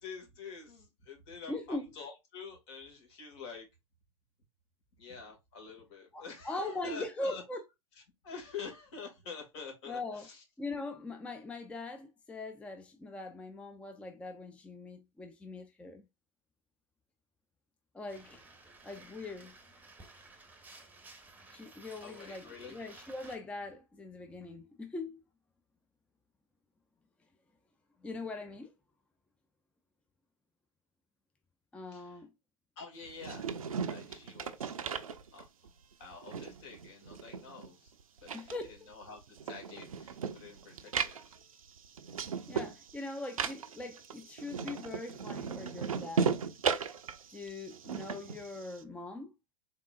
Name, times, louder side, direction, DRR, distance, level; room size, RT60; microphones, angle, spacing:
voice 1, 0.0-3.7 5.0-7.4 8.2-10.4 22.0-22.8 31.9-32.2 32.8-33.5 33.8-34.8 35.3-35.5 36.0-37.9 38.2-41.4, left 5 dB, 55° left, 2.0 m, -47 dB
voice 2, 1.5-1.9 6.1-7.6 9.8-10.3 10.6-16.1 17.9-18.4 18.8-19.5 21.5-25.2 28.0-28.7 31.7-32.3 38.3-38.8 42.5-46.4 47.3-49.3, left 2 dB, 5° left, 0.5 m, -41 dB
sound 1, 18.1-23.4, right 3 dB, 10° right, 0.9 m, -55 dB
sound 2, 33.0-35.7 36.0-37.9 38.2-48.8, right 6 dB, 80° right, 0.5 m, -37 dB
3.9 x 3.7 x 2.4 m
figure-of-eight pair, 95°, 17 cm